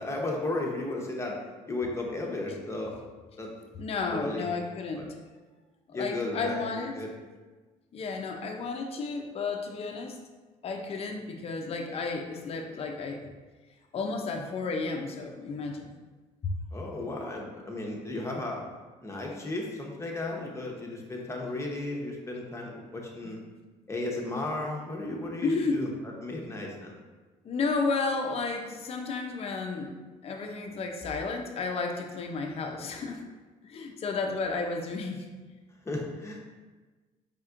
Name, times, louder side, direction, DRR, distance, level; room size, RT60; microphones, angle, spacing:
voice 1, 0.0-1.4 1.7-3.0 3.4-3.5 4.1-4.5 5.0-5.1 5.9-6.6 6.9-7.1 16.7-18.6 19.0-23.4 23.9-27.0 35.9-36.4, left 2 dB, 20° left, -1 dB, 0.9 m, -34 dB
voice 2, 3.8-5.1 6.0-7.0 7.9-10.2 10.6-13.2 13.9-15.9 16.4-16.5 25.4-25.7 27.4-29.9 30.2-33.2 33.6-35.2, left 4 dB, 45° left, 3 dB, 0.5 m, -32 dB
4.2 x 3.5 x 2.5 m, 1.3 s
supercardioid pair, 75°, 15 cm